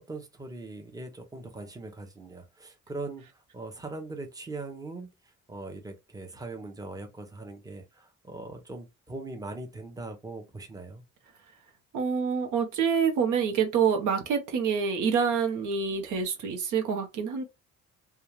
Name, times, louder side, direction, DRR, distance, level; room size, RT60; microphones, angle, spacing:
voice 1, 0.0-5.1 5.5-11.0, right 2 dB, 10° right, 0.7 m, -40 dB
voice 2, 11.9-17.4, right 6 dB, 85° right, 0.8 m, -27 dB
2.3 x 2.3 x 3.1 m
cardioid pair, 90°, 30 cm